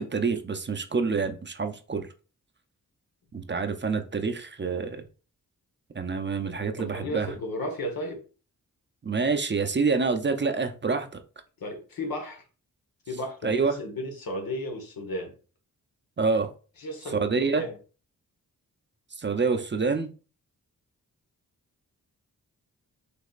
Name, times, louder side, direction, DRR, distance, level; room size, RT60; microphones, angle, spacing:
voice 1, 0.0-2.1 3.3-5.0 5.9-7.3 9.0-11.2 13.4-13.8 16.2-16.5 17.1-17.6 19.2-20.1, right 4 dB, 30° right, 0.6 m, -27 dB
voice 2, 6.7-8.2 11.6-12.4 13.1-15.3 16.8-17.8, left 1 dB, 80° left, 1.4 m, -34 dB
5.1 x 3.4 x 2.5 m
cardioid pair, 75°, 35 cm